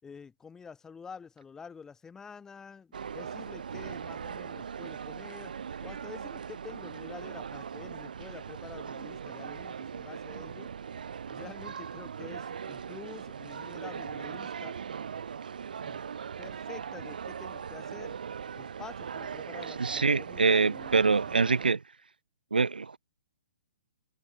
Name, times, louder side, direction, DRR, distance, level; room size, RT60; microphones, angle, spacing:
voice 1, 0.0-5.5 5.8-10.7 11.3-14.7 15.8-16.0 16.4-18.2 18.6-21.6, left 6 dB, 10° left, 7.6 m, -48 dB
sound 1, 2.9-21.7, right 7 dB, 70° right, 1.4 m, -40 dB
voice 2, 19.8-21.8 22.5-23.0, right 4 dB, 85° right, 1.3 m, -25 dB
hypercardioid pair, 130°, 5 cm